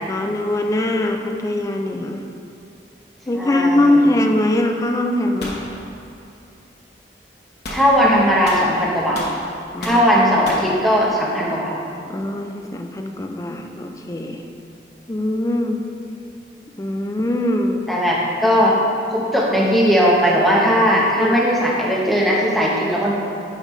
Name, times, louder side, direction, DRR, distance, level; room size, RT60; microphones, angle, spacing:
voice 1, 0.1-2.2 3.3-5.6 9.7-10.0 12.1-14.4 15.1-15.8 16.8-17.9 21.1-21.4, left 1 dB, 20° left, 4 dB, 0.4 m, -21 dB
voice 2, 3.3-4.0 7.7-9.2 9.8-11.7 17.9-18.8 19.1-23.1, equal, ahead, -5 dB, 0.9 m, -18 dB
sound 1, 5.4-5.7 7.6-7.9 8.5-9.4 9.8-10.1 10.5-10.7, left 1 dB, 65° left, 1.0 m, -31 dB
8.6 x 5.2 x 3.1 m, 2.6 s
head